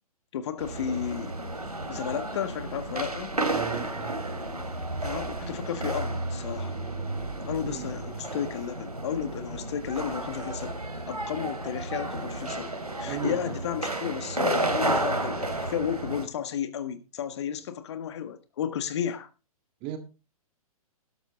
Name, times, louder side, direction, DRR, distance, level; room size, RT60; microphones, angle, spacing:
voice 1, 0.3-1.3 1.9-3.4 5.0-6.8 7.5-10.8 11.1-12.7 13.0-19.3, left 9 dB, 45° left, 1.6 m, -33 dB
sound 1, 0.6-16.3, right 2 dB, 85° right, 2.7 m, -32 dB
voice 2, 3.5-4.2 7.6-7.9 13.0-13.6 19.8-20.0, right 11 dB, 30° right, 1.9 m, -36 dB
12.5 x 12.0 x 3.7 m
figure-of-eight pair, 120°, 19 cm